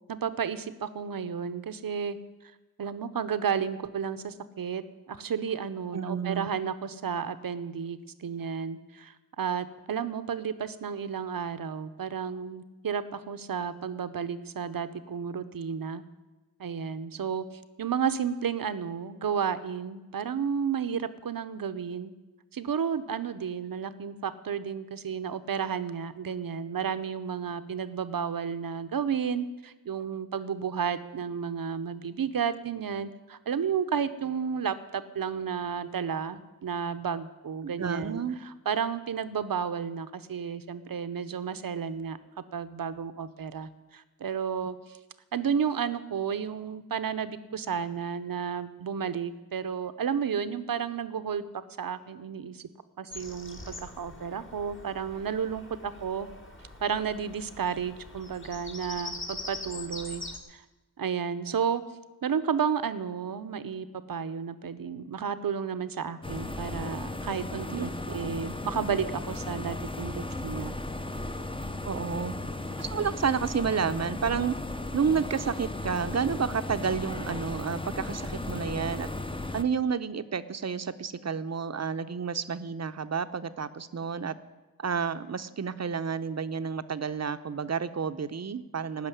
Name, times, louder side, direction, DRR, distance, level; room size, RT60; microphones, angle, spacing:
voice 1, 0.1-2.2 2.8-16.0 16.6-17.5 17.8-22.1 22.5-42.2 42.5-45.0 45.3-51.5 51.8-52.7 53.0-56.3 56.8-60.2 60.5-60.6 61.0-61.8 62.2-70.8, right 7 dB, 75° right, 12 dB, 0.8 m, -32 dB
voice 2, 5.9-6.5 37.6-38.4 67.7-67.9 71.8-72.3 72.8-74.5 74.9-79.1 79.5-84.4 84.8-89.1, right 6 dB, 50° right, 11 dB, 0.7 m, -30 dB
Bird vocalization bird call bird song, 53.1-60.4, left 2 dB, 35° left, 1.6 m, -43 dB
sound 1, 66.2-79.6, left 2 dB, 15° left, 0.7 m, -36 dB
16.5 x 6.3 x 9.8 m, 1.2 s
wide cardioid pair, 95°, 35 cm